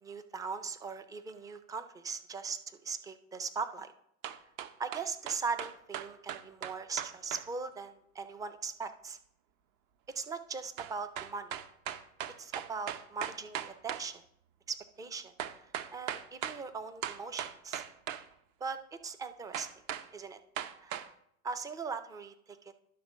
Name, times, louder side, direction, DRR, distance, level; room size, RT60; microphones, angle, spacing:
voice 1, 0.0-3.9 4.8-9.2 10.1-11.6 12.4-14.2 14.7-15.3 15.9-17.8 18.6-19.8 20.1-20.4 20.8-21.1 21.4-22.7, right 5 dB, 10° right, 11 dB, 0.3 m, -40 dB
sound 1, 4.2-7.5 10.8-14.1 15.4-16.6 17.0-18.3 19.5-20.1 20.6-21.1, right 10 dB, 50° right, 0.7 m, -38 dB
11.0 x 3.7 x 6.1 m, 0.72 s
supercardioid pair, 120°, 39 cm